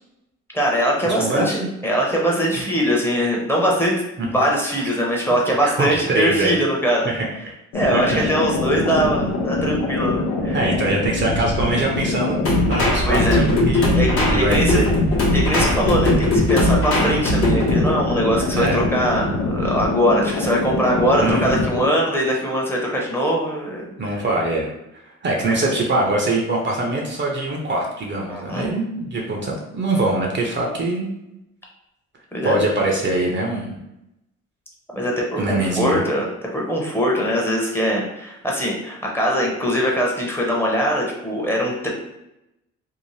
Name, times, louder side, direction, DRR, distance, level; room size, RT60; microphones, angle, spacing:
voice 1, 0.5-7.1 7.7-10.7 13.1-13.4 13.9-14.8 15.3-24.2 28.3-28.7 32.3-32.6 34.9-36.2 36.5-41.9, equal, 10° left, -3 dB, 0.8 m, -22 dB
voice 2, 1.1-1.7 4.2-4.3 5.6-6.6 7.0-7.3 7.9-8.3 10.5-12.4 12.7-13.9 14.3-14.9 18.5-18.8 21.2-21.7 24.0-24.7 25.0-31.1 32.4-33.8 35.4-36.0, right 2 dB, 40° right, -1 dB, 0.6 m, -23 dB
sound 1, 7.7-21.9, left 2 dB, 85° left, 0.6 m, -24 dB
sound 2, 12.5-17.9, left 1 dB, 45° left, 0.9 m, -19 dB
2.7 x 2.0 x 3.2 m, 0.87 s
cardioid pair, 90°, 30 cm